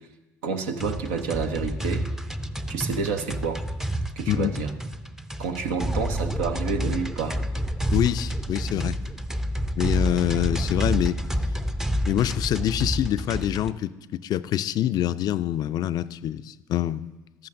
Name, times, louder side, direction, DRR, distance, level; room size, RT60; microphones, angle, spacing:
voice 1, 0.4-2.1 2.7-3.6 4.2-4.7 5.4-7.5, right 5 dB, 75° right, 6 dB, 0.9 m, -29 dB
sound 1, 0.8-13.7, equal, 5° right, 0.5 m, -29 dB
voice 2, 7.9-9.0 9.8-11.2 12.1-13.9 14.2-17.1, left 12 dB, 50° left, 14 dB, 0.4 m, -25 dB
13.0 x 11.5 x 2.6 m, 1.1 s
hypercardioid pair, 65°, 8 cm